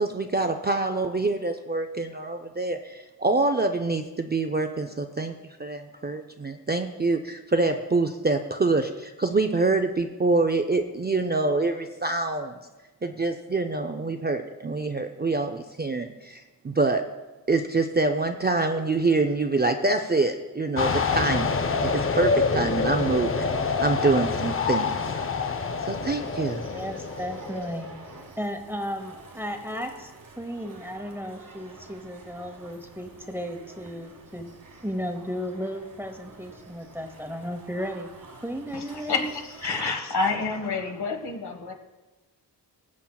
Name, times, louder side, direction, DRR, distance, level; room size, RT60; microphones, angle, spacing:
voice 1, 0.0-5.3 5.6-12.6 13.0-17.1 17.5-25.1 25.8-26.6, right 3 dB, 25° right, 5 dB, 0.4 m, -26 dB
sound 1, 20.8-28.1, left 4 dB, 30° left, 0.5 m, -27 dB
sound 2, 22.6-39.8, right 3 dB, 50° right, 1.3 m, -49 dB
voice 2, 26.7-30.1 30.4-34.5 34.8-38.1 38.4-39.3, equal, 5° right, 4 dB, 0.9 m, -34 dB
voice 3, 38.7-41.7, left 4 dB, 65° left, 3 dB, 1.3 m, -29 dB
21.0 x 7.3 x 2.3 m, 1.2 s
wide cardioid pair, 120°, 43 cm